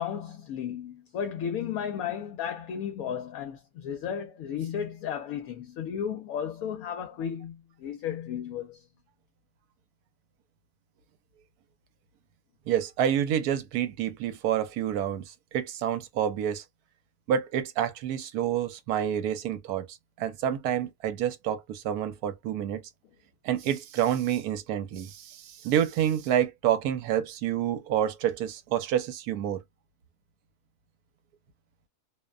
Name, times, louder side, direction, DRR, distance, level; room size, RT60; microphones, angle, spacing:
voice 1, 0.0-8.8, left 8 dB, 70° left, 1.0 m, -34 dB
voice 2, 12.7-16.6 17.3-19.9 20.2-22.8 23.4-29.6, right 10 dB, 80° right, 1.1 m, -28 dB
2.7 x 2.1 x 2.3 m
omnidirectional pair, 1.6 m